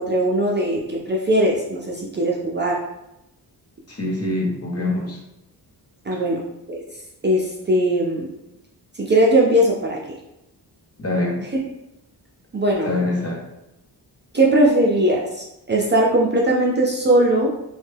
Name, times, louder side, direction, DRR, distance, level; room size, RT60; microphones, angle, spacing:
voice 1, 0.0-2.8 6.1-6.4 6.7-6.8 7.2-8.3 9.0-10.0 12.5-12.9 14.3-17.5, right 1 dB, 25° right, -3 dB, 0.5 m, -19 dB
voice 2, 3.9-5.2 6.1-6.2 11.0-11.4 12.9-13.5, left 2 dB, 35° left, -2 dB, 0.8 m, -24 dB
3.1 x 2.2 x 3.3 m, 0.89 s
wide cardioid pair, 115°, 41 cm